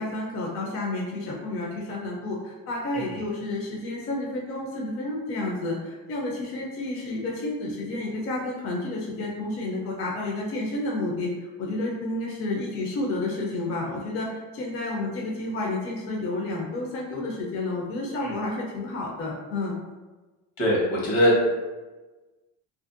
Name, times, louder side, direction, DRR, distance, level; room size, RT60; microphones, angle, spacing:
voice 1, 0.0-11.3 11.6-19.8, left 2 dB, 40° left, -2 dB, 0.4 m, -30 dB
voice 2, 20.6-21.5, equal, 75° left, -4 dB, 1.1 m, -22 dB
2.5 x 2.1 x 2.4 m, 1.2 s
cardioid pair, 125°, 36 cm